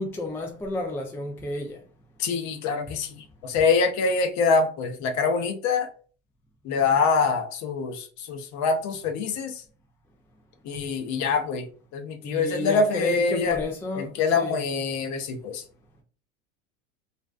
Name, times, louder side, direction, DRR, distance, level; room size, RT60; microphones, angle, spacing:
voice 1, 0.0-1.8 12.2-14.6, left 2 dB, 5° left, 0.3 m, -31 dB
voice 2, 2.2-5.9 6.6-9.6 10.6-11.7 11.9-13.6 14.0-15.6, left 4 dB, 45° left, 0.6 m, -25 dB
2.5 x 2.1 x 2.4 m
hypercardioid pair, 80°, 39 cm